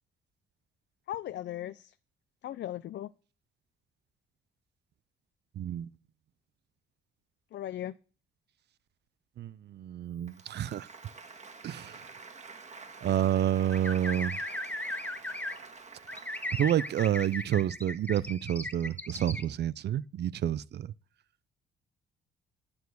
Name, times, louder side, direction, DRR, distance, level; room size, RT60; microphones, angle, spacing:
voice 1, 1.1-1.9 2.4-3.1 7.5-7.9, left 12 dB, 65° left, 0.5 m, -37 dB
voice 2, 5.6-5.9 9.4-10.9 11.6-12.0 13.0-14.4 16.5-20.9, right 11 dB, 60° right, 0.5 m, -29 dB
Applause, 10.2-17.6, right 4 dB, 35° right, 1.8 m, -49 dB
sound 1, 13.7-15.6 16.1-19.4, left 1 dB, 10° left, 1.4 m, -37 dB
9.2 x 7.0 x 8.0 m
cardioid pair, 90°, 20 cm